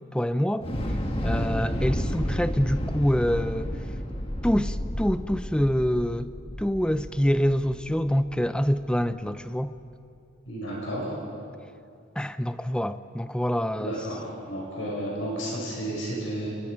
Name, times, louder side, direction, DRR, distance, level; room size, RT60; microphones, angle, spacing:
voice 1, 0.1-0.7 1.2-3.7 4.4-6.3 6.6-9.7 12.2-13.9, equal, 5° left, 12 dB, 0.5 m, -26 dB
Thunder / Explosion, 0.6-8.8, equal, 25° left, 1.7 m, -31 dB
voice 2, 10.4-11.1 13.8-16.5, right 1 dB, 65° left, -3 dB, 6.1 m, -32 dB
27.5 x 22.5 x 5.2 m, 2.5 s
head